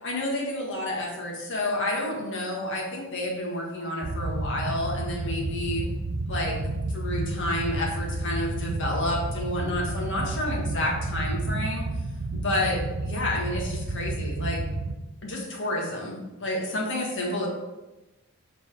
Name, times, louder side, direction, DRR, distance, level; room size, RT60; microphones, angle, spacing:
voice 1, 0.0-5.9 6.3-6.6 6.9-11.9 12.3-14.6 15.2-17.5, left 1 dB, 55° left, -2 dB, 1.7 m, -30 dB
sound 1, 4.0-14.9, right 2 dB, 65° right, 0.6 m, -31 dB
7.1 x 4.0 x 5.0 m, 1.1 s
head